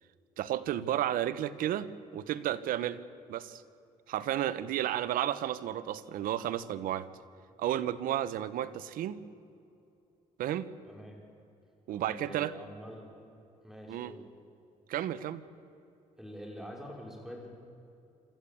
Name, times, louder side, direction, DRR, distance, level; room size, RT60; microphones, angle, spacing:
voice 1, 0.4-3.0 3.3-3.6 4.1-7.1 7.6-9.2 10.4-10.7 11.9-12.5 13.9-14.1 14.9-15.4, right 12 dB, 80° right, 14 dB, 1.0 m, -32 dB
voice 2, 10.9-11.2 11.9-13.1 13.6-14.2 16.2-17.5, equal, 5° right, 0 dB, 5.7 m, -45 dB
27.5 x 13.5 x 8.6 m, 2.6 s
cardioid pair, 95°, 14 cm